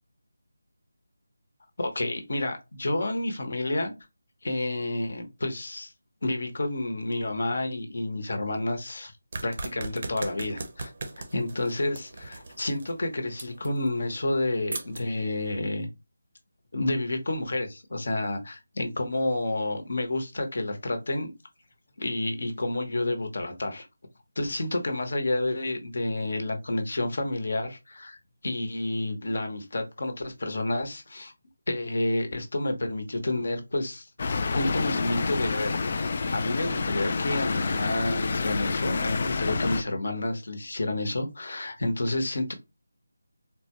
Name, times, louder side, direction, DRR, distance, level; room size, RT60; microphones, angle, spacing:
voice 1, 1.8-3.9 4.4-5.9 6.2-9.1 9.4-10.9 11.3-15.9 16.7-21.3 22.0-23.9 24.4-31.3 31.7-34.1 34.5-42.5, left 2 dB, 60° left, 1.0 m, -30 dB
sound 1, 9.3-15.5, right 3 dB, 45° right, 0.7 m, -40 dB
sound 2, 34.2-39.8, left 4 dB, 40° left, 0.3 m, -28 dB
3.9 x 2.2 x 2.9 m
figure-of-eight pair, 165°, 0 cm